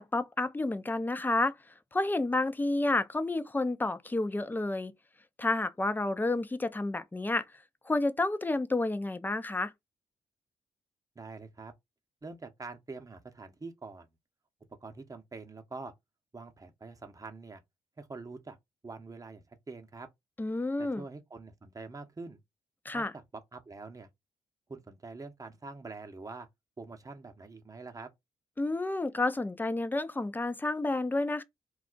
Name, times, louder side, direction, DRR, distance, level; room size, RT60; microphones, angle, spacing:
voice 1, 0.0-1.5 1.9-4.9 5.4-7.4 7.9-9.7 20.4-21.0 22.9-23.1 28.6-31.4, left 2 dB, 15° left, 0.5 m, -30 dB
voice 2, 11.2-11.7 12.2-14.1 14.8-15.9 16.3-17.6 18.0-18.6 18.8-20.1 20.8-22.4 22.9-23.2 23.5-24.1 24.7-26.5 26.8-28.1, right 3 dB, 25° right, 0.8 m, -45 dB
2.3 x 2.0 x 3.8 m
hypercardioid pair, 45°, 14 cm